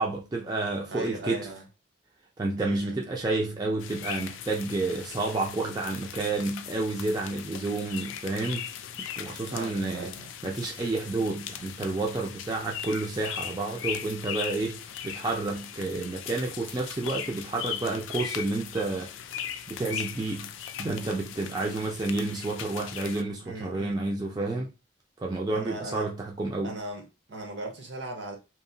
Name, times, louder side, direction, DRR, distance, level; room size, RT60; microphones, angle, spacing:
voice 1, 0.0-1.5 2.4-8.7 9.0-10.1 10.4-19.1 19.7-24.7 25.2-26.8, right 2 dB, 20° right, 0.3 m, -30 dB
voice 2, 0.9-1.6 2.6-2.9 9.5-10.3 23.4-24.0 25.5-26.1 26.6-28.4, right 1 dB, 70° right, 0.8 m, -38 dB
sound 1, 3.8-23.2, left 9 dB, 85° left, 0.3 m, -39 dB
2.8 x 2.0 x 2.6 m
head